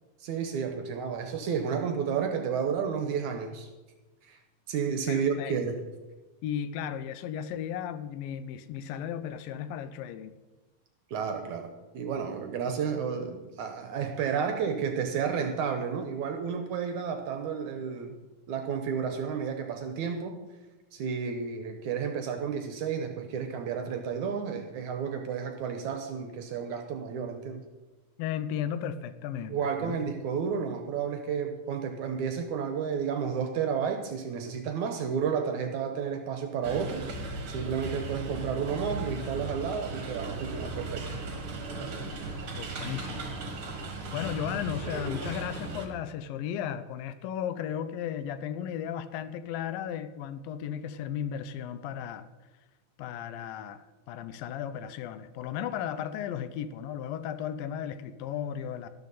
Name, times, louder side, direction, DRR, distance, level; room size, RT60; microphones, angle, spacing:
voice 1, 0.2-3.7 4.2-4.4 4.7-5.8 11.1-11.7 11.9-18.2 18.5-20.4 20.9-27.6 29.5-37.1 37.5-41.1, right 6 dB, 70° right, 6 dB, 2.0 m, -31 dB
voice 2, 5.1-5.6 6.4-10.3 28.2-30.0 42.5-43.3 44.1-52.3 53.0-58.9, left 9 dB, 80° left, 12 dB, 2.4 m, -35 dB
sound 1, 36.6-45.9, right 2 dB, 50° right, 1.8 m, -37 dB
13.0 x 12.5 x 4.1 m, 1.2 s
omnidirectional pair, 4.1 m